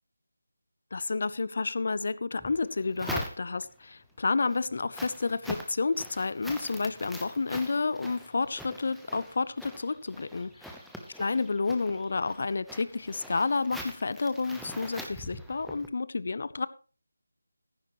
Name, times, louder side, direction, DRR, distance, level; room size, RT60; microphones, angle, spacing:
voice 1, 0.9-10.8 11.2-16.7, left 4 dB, 50° left, 0.7 m, -30 dB
sound 1, 2.4-3.8 4.3-15.9, equal, ahead, 0.9 m, -43 dB
15.0 x 10.0 x 3.1 m
figure-of-eight pair, 165°, 0 cm